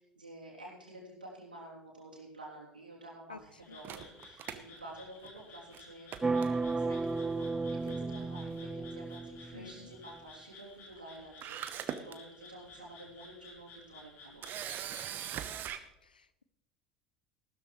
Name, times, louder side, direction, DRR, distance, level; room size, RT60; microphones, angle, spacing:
voice 1, 0.1-14.5, right 1 dB, 85° right, -4 dB, 3.4 m, -50 dB
Frog, 3.6-15.3, left 3 dB, 50° left, 4.3 m, -55 dB
Camera, 3.8-5.4 5.7-5.8 6.1-7.0 7.9-8.2 8.4-8.5 11.0-11.1 11.4-12.2 12.7-12.9 14.4-15.8, right 10 dB, 45° right, 1.0 m, -40 dB
sound 1, 6.2-9.9, right 3 dB, 15° right, 0.4 m, -34 dB
voice 2, 9.5-9.9 16.0-16.4, left 4 dB, 85° left, 15 dB, 0.6 m, -50 dB
15.0 x 13.0 x 3.2 m, 0.90 s
figure-of-eight pair, 65°, 5 cm